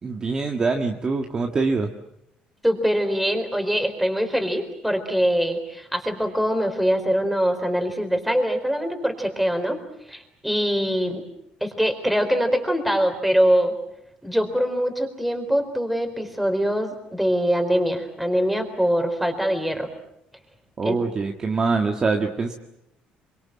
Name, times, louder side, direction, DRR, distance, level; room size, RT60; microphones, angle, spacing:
voice 1, 0.0-1.9 20.8-22.5, right 4 dB, 25° right, 3 dB, 1.7 m, -24 dB
voice 2, 2.6-9.8 10.1-11.2 11.6-13.7 14.2-19.9 20.8-21.0, equal, ahead, 6 dB, 4.2 m, -23 dB
27.0 x 24.5 x 7.6 m, 0.81 s
cardioid pair, 150°, 3 cm